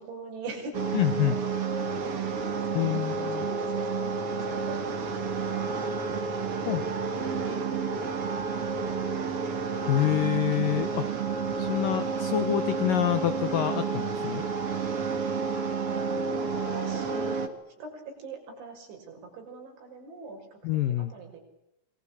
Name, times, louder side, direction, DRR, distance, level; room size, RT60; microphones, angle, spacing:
voice 1, 0.0-1.5 2.0-5.8 7.0-7.1 7.7-7.8 15.4-21.4, right 4 dB, 70° right, 3 dB, 8.5 m, -44 dB
sound 1, 0.7-17.5, right 5 dB, 45° right, 2.1 m, -30 dB
voice 2, 0.9-1.4 2.7-3.5 6.7-6.8 9.9-11.1 11.6-14.4 20.6-21.1, left 12 dB, 80° left, 12 dB, 1.9 m, -27 dB
27.5 x 23.0 x 8.7 m, 0.81 s
omnidirectional pair, 5.7 m